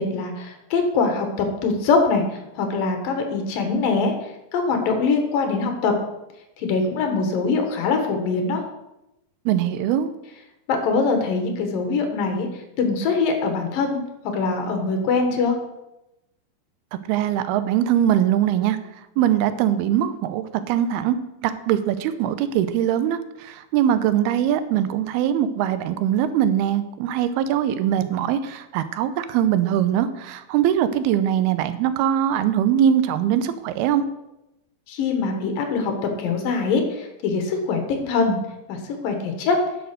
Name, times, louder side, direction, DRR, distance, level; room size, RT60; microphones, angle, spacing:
voice 1, 0.0-2.2 2.6-4.1 4.5-6.0 6.6-8.6 10.7-12.5 12.8-14.0 14.3-15.6 34.9-35.9 36.2-38.4 38.7-39.6, left 4 dB, 70° left, 5 dB, 2.9 m, -23 dB
voice 2, 9.5-10.1 17.1-18.8 19.2-21.2 21.4-34.0, right 10 dB, 85° right, 12 dB, 2.6 m, -22 dB
10.5 x 6.5 x 6.7 m, 0.92 s
omnidirectional pair, 4.4 m